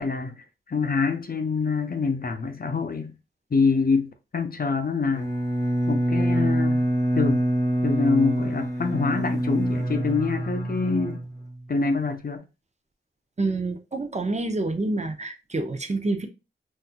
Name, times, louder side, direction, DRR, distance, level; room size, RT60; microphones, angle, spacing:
voice 1, 0.0-3.1 3.5-5.3 5.9-6.8 7.2-7.4 7.8-11.2 11.7-12.4, left 4 dB, 45° left, 0.5 m, -25 dB
Bowed string instrument, 5.1-11.7, right 1 dB, 15° left, 0.9 m, -25 dB
voice 2, 13.4-16.3, right 2 dB, 35° right, 0.6 m, -27 dB
4.1 x 2.5 x 2.4 m
wide cardioid pair, 55°, 21 cm